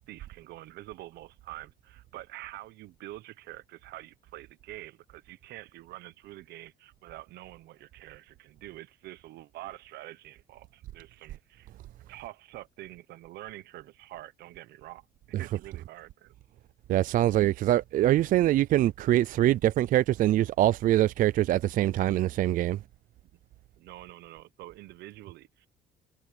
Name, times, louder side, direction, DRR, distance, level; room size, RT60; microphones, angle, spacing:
voice 1, 0.1-11.7 12.1-15.0 15.4-16.3 23.8-25.7, right 16 dB, 75° right, 1.0 m, -46 dB
voice 2, 16.9-22.8, right 13 dB, 55° right, 0.4 m, -24 dB
cardioid pair, 110°, 17 cm